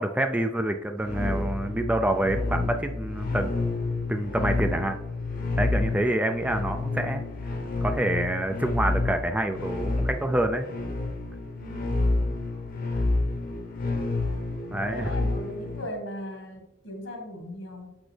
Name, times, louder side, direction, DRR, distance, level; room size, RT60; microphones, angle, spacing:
voice 1, 0.0-3.5 4.1-5.0 5.6-7.3 7.8-10.7 14.7-15.1, right 1 dB, 5° right, 6 dB, 0.3 m, -27 dB
sound 1, 1.0-15.8, left 2 dB, 45° left, 0.9 m, -29 dB
voice 2, 11.6-12.5 14.8-18.0, equal, 75° left, 3 dB, 1.7 m, -39 dB
7.1 x 6.1 x 3.3 m, 0.93 s
head